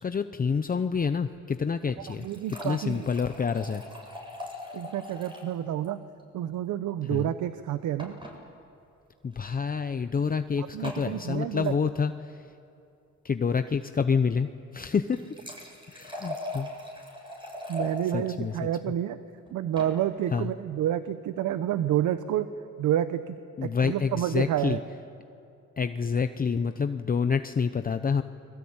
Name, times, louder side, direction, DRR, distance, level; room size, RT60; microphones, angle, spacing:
voice 1, 0.0-3.8 7.1-7.3 9.2-12.5 13.2-15.3 15.9-16.7 18.1-18.5 20.3-20.5 23.6-24.8 25.8-28.2, left 5 dB, 30° left, 9 dB, 0.8 m, -28 dB
sound 1, 1.8-5.6 5.8-5.9 6.2-6.3 8.0-8.4 9.3-9.5 10.8-11.1 14.9-18.0 19.5-19.9, left 1 dB, 15° right, 7.7 m, -40 dB
voice 2, 2.2-3.1 4.7-6.0 6.3-8.2 10.6-11.7 17.7-19.2 19.5-22.5 22.8-24.8, right 11 dB, 80° right, 12 dB, 1.0 m, -29 dB
30.0 x 22.0 x 8.8 m, 2.6 s
cardioid pair, 90°, 30 cm